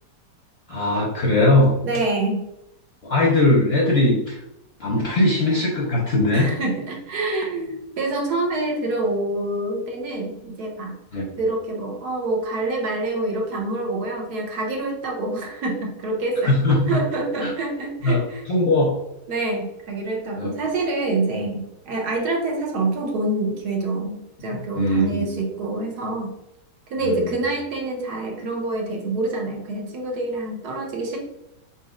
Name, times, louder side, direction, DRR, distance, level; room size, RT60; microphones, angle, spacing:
voice 1, 0.7-1.8 3.0-4.4 4.8-6.5 11.1-11.3 16.4-17.0 17.4-17.5 18.0-19.0 20.4-20.5 24.8-25.3 27.0-27.3, left 2 dB, 50° left, -3 dB, 0.8 m, -20 dB
voice 2, 1.8-2.4 6.3-11.0 11.4-18.4 19.3-26.3 26.9-31.2, right 2 dB, 70° right, 0 dB, 1.4 m, -26 dB
4.2 x 4.1 x 2.5 m, 0.86 s
omnidirectional pair, 1.8 m